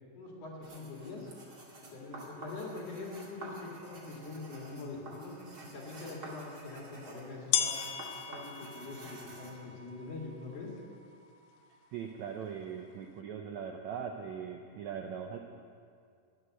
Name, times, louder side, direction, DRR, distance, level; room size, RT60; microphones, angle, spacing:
voice 1, 0.1-1.3 1.8-5.3 5.6-7.7 8.1-10.7, left 3 dB, 50° left, -2 dB, 3.0 m, -44 dB
sound 1, 0.6-9.6, right 1 dB, 30° right, 2.1 m, -49 dB
sound 2, 3.6-3.7 4.4-4.5 6.3-6.4 7.5-13.1, left 9 dB, 80° left, 1.8 m, -38 dB
voice 2, 11.9-15.4, right 7 dB, 90° right, 3 dB, 1.6 m, -40 dB
14.5 x 6.6 x 9.9 m, 2.2 s
omnidirectional pair, 4.1 m